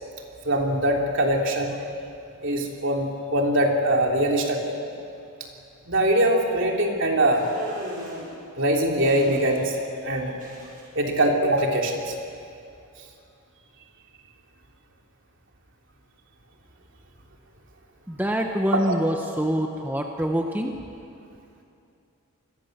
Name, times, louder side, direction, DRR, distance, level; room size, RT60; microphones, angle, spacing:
voice 1, 0.4-1.7 2.4-4.6 5.9-7.5 8.5-9.8 10.0-10.3 10.9-12.1 18.7-18.8, right 1 dB, 55° right, 1 dB, 3.2 m, -22 dB
sound 1, 7.3-8.3 9.0-9.8 10.0-10.8, equal, 40° right, 6.2 m, -38 dB
voice 2, 18.1-20.7, equal, 10° right, 3 dB, 1.0 m, -25 dB
27.5 x 21.5 x 6.7 m, 2.6 s
head